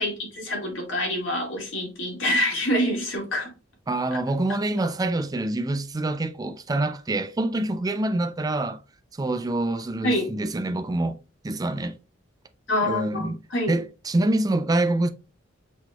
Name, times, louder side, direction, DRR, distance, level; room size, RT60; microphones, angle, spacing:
voice 1, 0.0-3.5 4.1-4.2 10.0-10.3 12.7-13.8, left 1 dB, 85° left, 1.8 m, -26 dB
voice 2, 3.9-8.8 9.2-11.2 11.4-12.0 12.8-13.4 13.7-15.1, right 2 dB, 20° right, 0.4 m, -26 dB
5.9 x 3.1 x 2.2 m
head